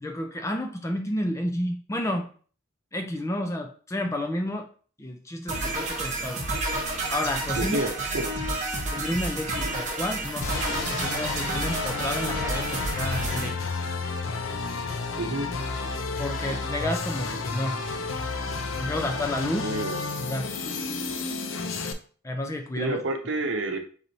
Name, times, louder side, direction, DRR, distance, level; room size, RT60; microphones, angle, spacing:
voice 1, 0.0-2.3 2.9-4.7 5.0-6.4 7.1-7.8 8.1-8.2 8.9-13.6 16.2-17.8 18.8-19.7 20.2-20.6 21.2-21.3 21.8-21.9 22.2-23.0, left 1 dB, 15° left, 4 dB, 0.4 m, -31 dB
sound 1, 5.5-13.5, right 2 dB, 35° right, 1.1 m, -30 dB
voice 2, 7.6-7.9 8.1-8.2 15.2-15.5 19.6-20.0 22.8-23.8, right 2 dB, 65° right, 4 dB, 0.8 m, -28 dB
sound 2, 10.4-21.9, left 4 dB, 75° left, 0.6 m, -31 dB
4.0 x 3.0 x 4.0 m, 0.43 s
head